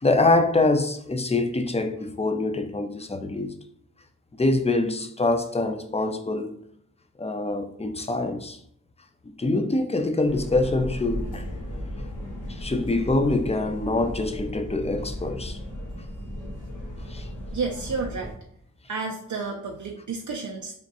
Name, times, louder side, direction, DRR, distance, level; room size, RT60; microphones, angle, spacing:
voice 1, 0.0-3.5 4.3-6.5 7.2-8.6 9.2-11.5 12.5-15.6 17.1-17.3, left 2 dB, 20° left, 0.5 m, -25 dB
sound 1, 10.2-18.3, equal, 65° left, 1.3 m, -35 dB
voice 2, 17.5-18.3 18.9-20.7, right 4 dB, 60° right, 0.5 m, -31 dB
3.6 x 2.5 x 4.1 m
cardioid pair, 50°, 33 cm